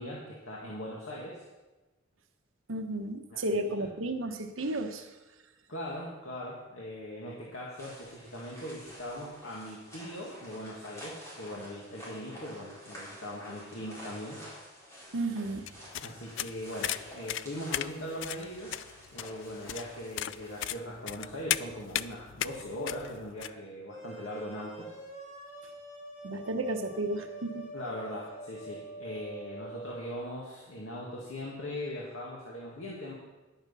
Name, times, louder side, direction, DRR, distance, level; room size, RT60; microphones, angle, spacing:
voice 1, 0.0-1.4 3.3-3.9 5.7-14.4 16.0-24.9 27.7-33.1, left 1 dB, 80° left, -4 dB, 2.0 m, -40 dB
voice 2, 2.7-5.1 15.1-15.7 26.2-27.7, right 2 dB, 80° right, 6 dB, 1.1 m, -33 dB
sound 1, 7.8-20.8, equal, 15° left, 4.2 m, -49 dB
sound 2, 15.7-23.5, left 12 dB, 65° left, 0.3 m, -36 dB
sound 3, 23.9-30.0, right 2 dB, 35° left, 3.9 m, -45 dB
11.0 x 8.9 x 5.6 m, 1.1 s
head